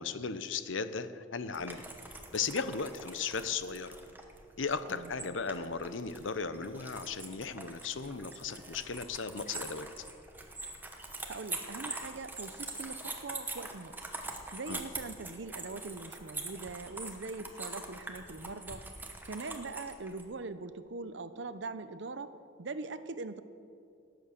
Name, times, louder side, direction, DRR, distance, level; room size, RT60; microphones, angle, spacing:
voice 1, 0.0-4.0 4.6-9.9 14.7-14.8, left 5 dB, 70° left, 12 dB, 0.7 m, -36 dB
sound 1, 1.5-20.2, right 2 dB, 10° right, 1.0 m, -44 dB
voice 2, 4.9-5.2 11.3-14.0 14.5-18.8 19.2-22.3 22.6-23.4, right 3 dB, 60° right, 12 dB, 0.7 m, -42 dB
18.0 x 7.9 x 6.5 m, 2.5 s
head